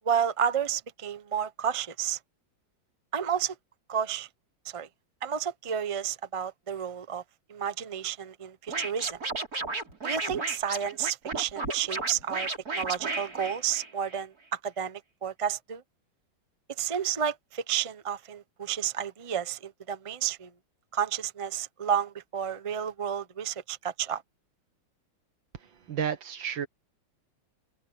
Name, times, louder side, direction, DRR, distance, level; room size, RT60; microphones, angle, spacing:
voice 1, 0.0-2.2 3.1-3.5 3.9-4.3 4.6-4.9 5.2-7.2 7.5-9.2 10.0-12.5 12.7-15.8 16.8-20.5 20.9-24.2, right 8 dB, 30° right, 0.6 m, -31 dB
Scratching (performance technique), 8.7-14.2, right 3 dB, 50° right, 4.7 m, -33 dB
voice 2, 25.5-26.7, right 7 dB, 75° right, 2.3 m, -32 dB
omnidirectional pair, 2.1 m